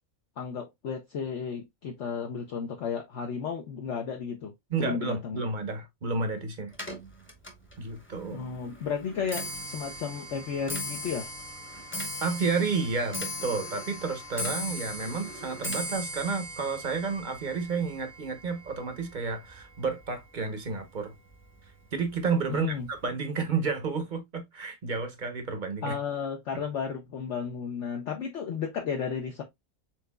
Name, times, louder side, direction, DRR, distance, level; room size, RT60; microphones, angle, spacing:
voice 1, 0.4-4.5 4.8-5.4 8.3-11.3 22.5-22.9 25.8-29.4, left 6 dB, 60° left, 1.0 m, -33 dB
voice 2, 4.7-6.7 7.8-8.5 12.2-21.1 21.9-26.0, right 4 dB, 40° right, 0.8 m, -31 dB
Clock, 6.7-20.1 20.4-20.9 21.7-21.8 22.1-22.5 22.7-22.8, equal, 10° left, 0.8 m, -38 dB
4.5 x 3.8 x 2.2 m
omnidirectional pair, 1.5 m